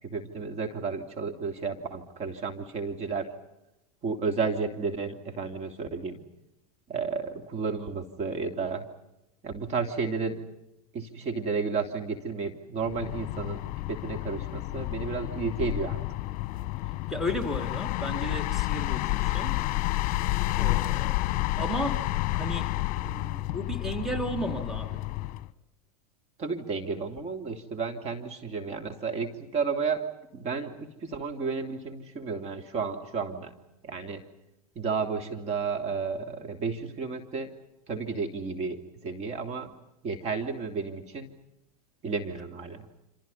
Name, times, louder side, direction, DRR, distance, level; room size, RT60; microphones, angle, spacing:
voice 1, 0.0-3.3 4.0-6.2 6.9-8.9 9.4-10.4 10.9-13.6 13.9-16.0 26.4-30.0 30.3-33.5 33.8-34.2 34.7-37.5 37.9-39.7 40.0-41.3 42.0-42.9, right 5 dB, 35° right, 3.0 m, -32 dB
sound 1, 12.8-25.5, left 18 dB, 45° left, 1.3 m, -30 dB
voice 2, 17.1-19.6 20.6-21.2 21.6-22.8 23.0-25.0, equal, ahead, 3.0 m, -34 dB
28.0 x 27.0 x 5.6 m
hypercardioid pair, 105°, 20 cm